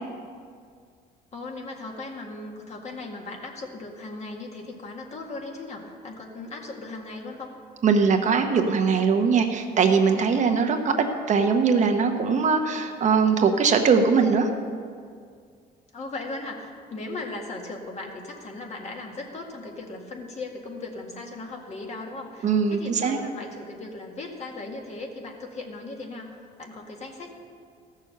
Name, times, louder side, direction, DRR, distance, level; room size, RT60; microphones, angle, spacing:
voice 1, 1.3-7.5 15.9-27.3, left 2 dB, 40° left, 1 dB, 1.9 m, -37 dB
voice 2, 7.8-10.9 11.3-14.5 22.4-23.2, right 5 dB, 45° right, 5 dB, 1.0 m, -21 dB
14.5 x 6.6 x 6.7 m, 2.1 s
cardioid pair, 110°, 17 cm